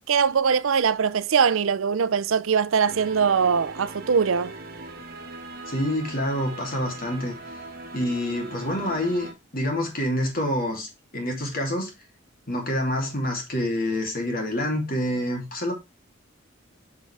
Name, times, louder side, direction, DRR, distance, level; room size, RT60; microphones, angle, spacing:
voice 1, 0.1-4.5, right 6 dB, 85° right, 0.5 m, -22 dB
sound 1, 2.9-9.3, right 2 dB, 50° right, 1.4 m, -40 dB
voice 2, 5.6-7.4 7.9-11.9 12.5-15.7, left 1 dB, 45° left, 2.7 m, -27 dB
6.7 x 6.1 x 3.3 m
head